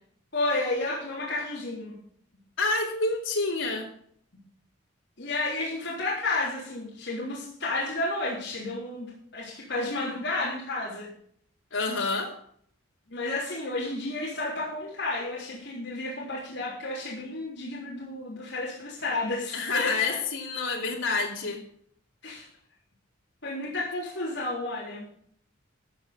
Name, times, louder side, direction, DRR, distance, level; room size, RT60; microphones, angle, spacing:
voice 1, 0.3-2.0 5.2-11.1 13.1-20.2 22.2-22.4 23.4-25.1, left 2 dB, 60° left, -7 dB, 3.7 m, -31 dB
voice 2, 2.6-3.9 11.7-12.3 19.5-21.6, left 3 dB, 75° left, -1 dB, 2.8 m, -28 dB
14.0 x 6.5 x 7.0 m, 0.64 s
head